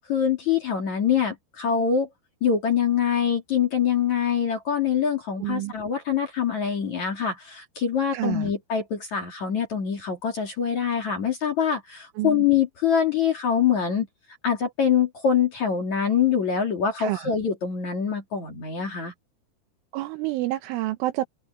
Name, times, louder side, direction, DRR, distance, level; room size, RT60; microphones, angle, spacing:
voice 1, 0.1-2.1 2.4-14.1 14.4-19.1, left 7 dB, 45° left, 3.1 m, -24 dB
voice 2, 5.4-5.7 8.1-8.5 12.2-12.5 17.0-17.3 19.9-21.2, right 16 dB, 80° right, 3.2 m, -28 dB
open air
omnidirectional pair, 5.9 m